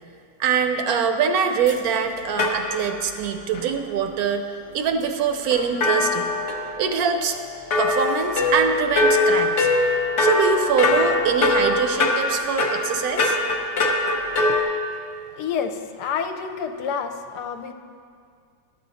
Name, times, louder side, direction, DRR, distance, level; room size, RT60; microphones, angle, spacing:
voice 1, 0.4-4.4 4.7-6.3 6.8-7.4 7.8-9.7 10.2-13.4, right 6 dB, 70° right, 7 dB, 1.0 m, -23 dB
sound 1, 1.7-1.8 2.4-3.2 3.5-3.6 5.5-7.1 7.7-14.6, left 2 dB, 50° left, 1.0 m, -22 dB
voice 2, 15.4-17.7, left 6 dB, 75° left, 7 dB, 1.1 m, -29 dB
12.0 x 7.8 x 4.1 m, 2.2 s
omnidirectional pair, 1.9 m